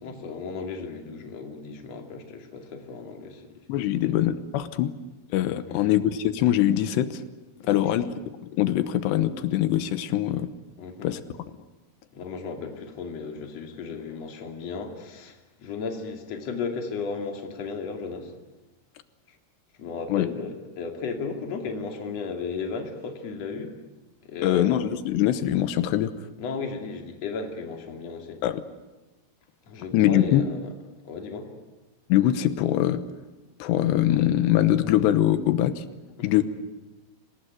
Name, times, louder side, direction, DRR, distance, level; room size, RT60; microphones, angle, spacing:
voice 1, 0.0-3.6 4.0-4.1 5.7-5.8 7.6-8.1 10.8-11.1 12.1-18.3 19.8-23.7 24.2-24.8 26.4-28.4 29.7-30.5 31.0-31.5 36.2-36.4, left 4 dB, 40° left, 3 dB, 3.2 m, -35 dB
voice 2, 3.7-4.9 5.3-7.2 7.7-8.1 8.5-10.5 11.0-11.2 20.1-20.3 24.4-26.1 28.4-28.6 29.9-30.4 32.1-33.0 33.6-35.8 36.2-36.4, left 12 dB, 80° left, 12 dB, 3.1 m, -23 dB
26.0 x 19.0 x 9.5 m, 1.1 s
omnidirectional pair, 5.1 m